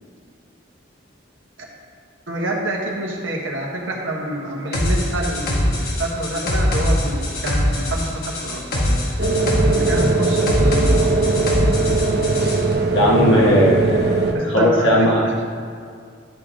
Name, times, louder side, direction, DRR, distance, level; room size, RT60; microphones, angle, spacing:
voice 1, 2.3-9.0 9.6-11.5 13.2-13.7 14.3-14.9 15.2-15.4, right 1 dB, 90° right, -1 dB, 1.4 m, -27 dB
sound 1, 4.7-12.6, left 1 dB, 55° left, 1.3 m, -22 dB
sound 2, 9.2-14.3, right 3 dB, 55° right, 0.8 m, -20 dB
voice 2, 12.9-15.2, equal, 85° left, -4 dB, 1.3 m, -17 dB
12.0 x 5.2 x 3.8 m, 2.2 s
head